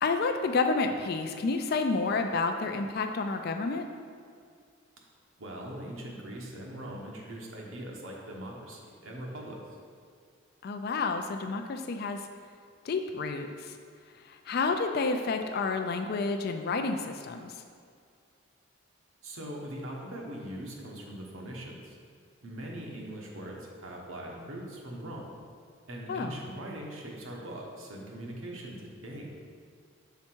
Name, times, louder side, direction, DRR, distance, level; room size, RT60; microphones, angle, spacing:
voice 1, 0.0-3.9 10.6-12.2 12.8-13.8 14.2-17.5 26.1-26.4, left 4 dB, 45° left, 6 dB, 0.3 m, -30 dB
voice 2, 5.4-9.6 19.2-22.0 22.4-25.3 25.9-29.3, right 1 dB, 75° right, -1 dB, 1.1 m, -41 dB
5.8 x 4.3 x 4.5 m, 2.2 s
head